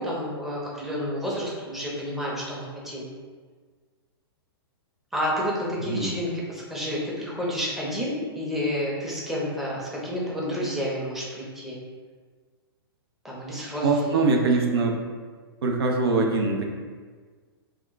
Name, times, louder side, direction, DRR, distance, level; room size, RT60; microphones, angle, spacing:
voice 1, 0.0-3.0 5.1-11.8 13.2-14.2, equal, ahead, -6 dB, 0.6 m, -30 dB
voice 2, 13.8-15.0 15.6-16.7, right 3 dB, 75° right, 2 dB, 0.4 m, -23 dB
2.3 x 2.2 x 3.8 m, 1.5 s
hypercardioid pair, 125°, 13 cm